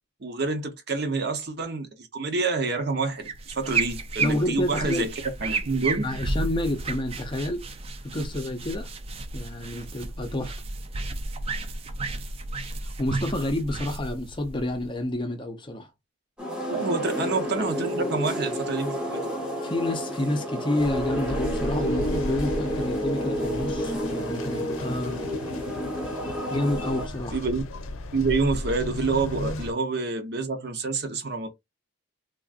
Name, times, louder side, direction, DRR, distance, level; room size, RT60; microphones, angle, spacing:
voice 1, 0.2-5.1 5.4-6.1 8.2-8.3 16.7-19.2 27.3-27.6 28.1-31.5, right 3 dB, 50° right, 0.7 m, -27 dB
sound 1, 3.2-15.1, right 3 dB, 25° right, 0.3 m, -32 dB
voice 2, 4.2-5.1 6.0-7.6 8.0-8.9 9.3-10.5 12.6-15.9 19.6-25.2 26.5-27.4, left 1 dB, 25° left, 0.5 m, -29 dB
sound 2, 16.4-27.1, equal, 5° right, 0.9 m, -30 dB
sound 3, 20.8-29.7, left 2 dB, 75° left, 0.6 m, -35 dB
3.5 x 2.4 x 2.4 m
head